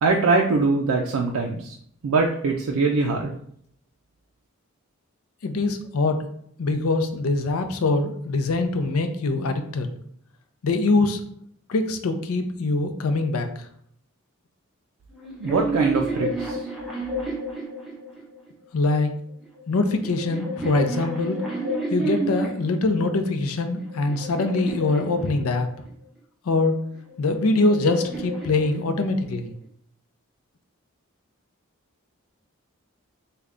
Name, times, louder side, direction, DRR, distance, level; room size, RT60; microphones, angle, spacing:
voice 1, 0.0-1.8 2.0-3.4 15.4-16.7, right 4 dB, 80° right, 0 dB, 0.4 m, -22 dB
voice 2, 5.4-6.2 6.6-9.9 10.6-11.2 11.7-13.6 18.7-19.1 19.7-21.4 21.9-25.7 26.5-26.7 27.2-29.5, left 3 dB, 80° left, 7 dB, 0.5 m, -23 dB
sound 1, 15.1-18.5 19.4-22.8 23.5-25.9 26.9-29.4, right 1 dB, ahead, 0.6 m, -31 dB
3.5 x 2.2 x 3.7 m, 0.66 s
head